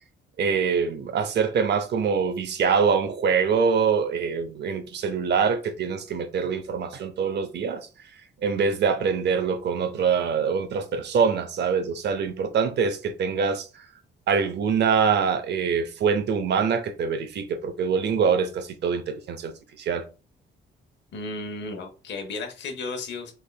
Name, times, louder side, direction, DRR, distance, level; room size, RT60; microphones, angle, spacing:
voice 1, 0.4-7.9 8.4-13.8 14.3-19.5 19.8-20.1, right 6 dB, 60° right, 0.6 m, -24 dB
voice 2, 21.1-23.3, left 3 dB, 65° left, 0.8 m, -34 dB
3.4 x 3.2 x 2.2 m
cardioid pair, 90°, 20 cm